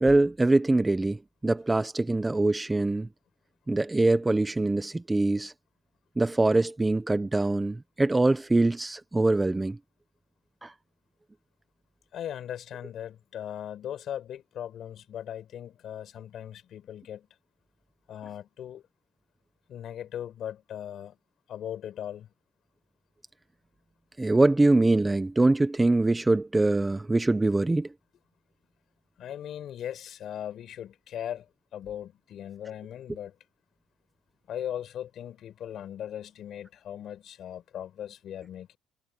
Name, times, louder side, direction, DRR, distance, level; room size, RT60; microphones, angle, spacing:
voice 1, 0.0-3.1 3.7-5.5 6.2-9.8 10.6-10.7 24.2-27.9, right 2 dB, 10° right, 0.7 m, -23 dB
voice 2, 12.1-17.3 18.1-18.8 19.7-21.1 21.5-22.3 29.2-31.4 31.7-33.3 34.5-38.8, left 10 dB, 50° left, 5.9 m, -38 dB
cardioid pair, 135°, 0 cm